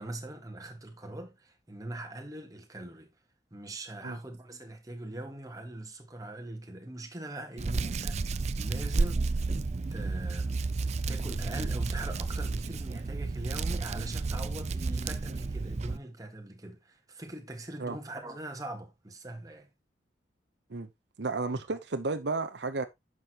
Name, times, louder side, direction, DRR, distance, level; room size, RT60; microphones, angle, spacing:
voice 1, 0.0-3.1 3.5-9.2 9.9-19.7, right 1 dB, 20° right, 1.5 m, -42 dB
Hands, 7.6-16.0, right 3 dB, 35° right, 0.4 m, -31 dB
voice 2, 21.2-22.9, right 3 dB, 65° right, 0.8 m, -32 dB
10.5 x 6.4 x 2.9 m
head